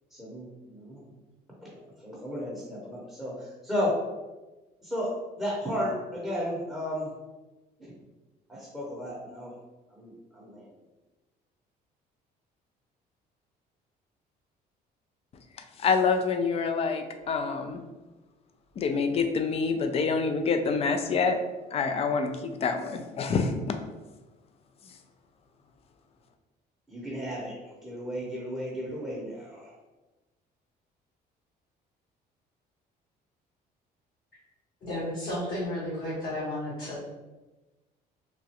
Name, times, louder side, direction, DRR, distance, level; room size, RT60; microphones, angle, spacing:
voice 1, 0.1-1.0 1.6-4.0 4.8-5.1 5.4-7.1 8.5-9.6 9.9-10.7 26.9-27.5 27.8-29.7, equal, ahead, -6 dB, 0.8 m, -34 dB
voice 2, 15.5-17.8 18.8-21.4 21.7-23.8 24.8-25.0, left 5 dB, 35° left, 6 dB, 0.4 m, -27 dB
voice 3, 34.8-37.0, left 1 dB, 55° left, -9 dB, 1.2 m, -33 dB
3.0 x 2.3 x 2.8 m, 1.1 s
cardioid pair, 110°, 17 cm